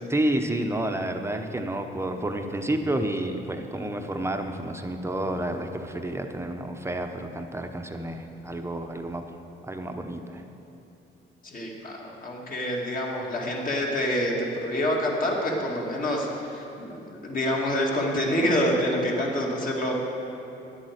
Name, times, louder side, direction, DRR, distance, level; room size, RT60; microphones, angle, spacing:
voice 1, 0.1-9.2 9.6-10.4, right 1 dB, 15° right, 5 dB, 0.8 m, -30 dB
voice 2, 11.4-19.9, left 1 dB, 45° left, -2 dB, 2.2 m, -27 dB
10.5 x 8.5 x 6.5 m, 2.9 s
cardioid pair, 90°, 20 cm